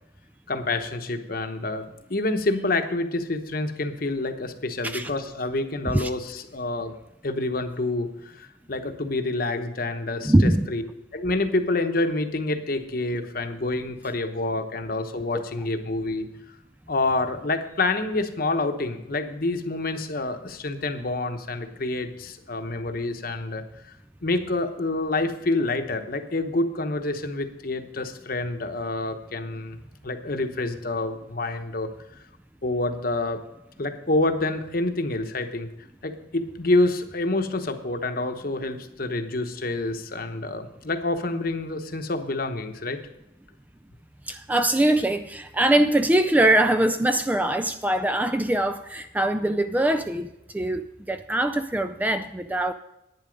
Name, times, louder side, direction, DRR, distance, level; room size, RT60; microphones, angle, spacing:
voice 1, 0.5-1.8 2.1-6.9 7.2-10.8 11.1-16.3 16.9-24.0 24.2-29.8 30.0-31.9 32.6-33.4 33.8-35.7 36.0-43.0, left 2 dB, 50° left, 7 dB, 1.0 m, -27 dB
voice 2, 10.2-10.7 15.3-15.4 44.3-52.7, right 1 dB, 10° right, 8 dB, 0.3 m, -22 dB
11.0 x 9.6 x 5.1 m, 0.90 s
head